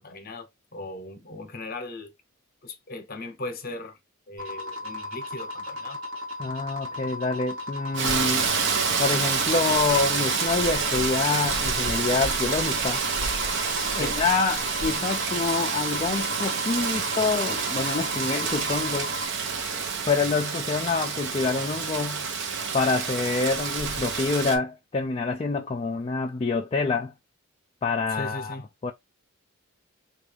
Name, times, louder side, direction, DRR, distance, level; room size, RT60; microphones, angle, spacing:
voice 1, 0.0-2.1 2.6-4.0 4.3-6.0 13.9-14.2 28.1-28.7, left 2 dB, 45° left, 0.8 m, -38 dB
sound 1, 4.4-19.3, left 2 dB, 90° right, 1.2 m, -36 dB
voice 2, 6.4-8.5 9.0-13.1 14.0-19.1 20.1-22.3 22.7-27.1 27.8-28.6 28.8-28.9, left 4 dB, 30° left, 0.4 m, -27 dB
Rain, 8.0-24.6, right 5 dB, 55° right, 0.7 m, -28 dB
3.8 x 2.4 x 3.3 m
head